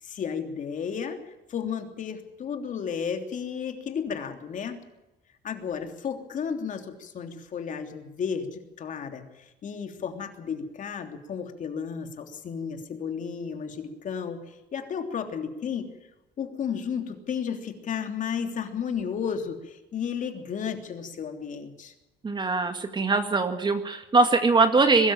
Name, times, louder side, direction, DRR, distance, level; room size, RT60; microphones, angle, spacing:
voice 1, 0.0-4.8 5.4-15.9 16.4-21.9, left 7 dB, 50° left, 5 dB, 3.3 m, -33 dB
voice 2, 22.2-25.1, right 3 dB, 25° right, 7 dB, 2.1 m, -22 dB
22.5 x 13.5 x 8.8 m, 0.99 s
cardioid pair, 110°, 17 cm